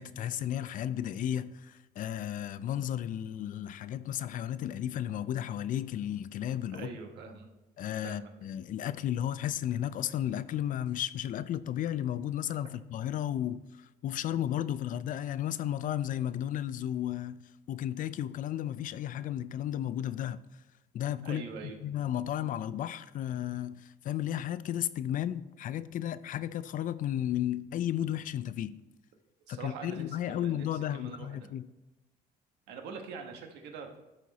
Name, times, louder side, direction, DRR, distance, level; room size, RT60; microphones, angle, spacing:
voice 1, 0.0-6.9 7.8-13.6 14.0-17.4 17.7-20.4 20.9-21.4 21.8-28.8 29.5-31.7, left 11 dB, 50° left, 0.4 m, -33 dB
voice 2, 6.8-7.5 8.0-8.3 21.2-21.8 29.5-31.5 32.7-34.0, right 5 dB, 85° right, 1.2 m, -44 dB
13.0 x 4.4 x 4.0 m
cardioid pair, 110°, 17 cm